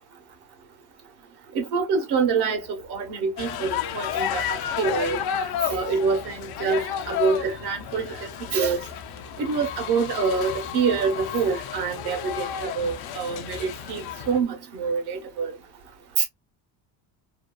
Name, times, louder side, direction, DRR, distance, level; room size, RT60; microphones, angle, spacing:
voice 1, 1.5-5.2 5.7-8.8 9.4-14.0 14.3-15.5 16.2-16.3, right 5 dB, 50° right, 1.0 m, -26 dB
sound 1, 3.4-14.4, left 9 dB, 50° left, 0.5 m, -32 dB
2.7 x 2.3 x 2.2 m
cardioid pair, 135°, 50 cm